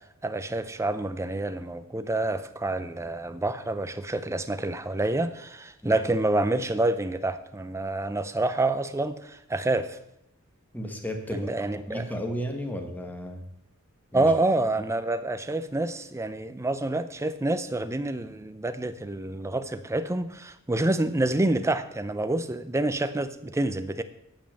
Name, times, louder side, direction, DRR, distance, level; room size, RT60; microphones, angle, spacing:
voice 1, 0.2-10.0 11.3-12.1 14.1-24.0, right 2 dB, 15° right, 11 dB, 0.5 m, -27 dB
voice 2, 10.7-11.5 11.9-13.4 14.1-14.3, equal, 10° left, 4 dB, 1.2 m, -33 dB
8.9 x 5.4 x 7.4 m, 0.82 s
head